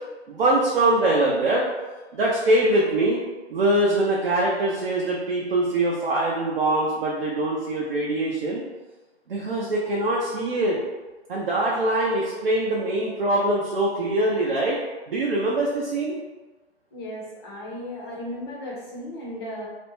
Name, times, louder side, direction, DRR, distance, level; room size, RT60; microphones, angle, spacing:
voice 1, 0.3-1.6 2.1-3.2 3.5-8.6 9.3-10.8 11.3-14.8 15.1-16.2, right 1 dB, 55° right, -4 dB, 0.6 m, -23 dB
voice 2, 16.9-19.7, left 1 dB, 25° left, -4 dB, 0.5 m, -35 dB
2.5 x 2.1 x 3.0 m, 1.2 s
hypercardioid pair, 140°, 33 cm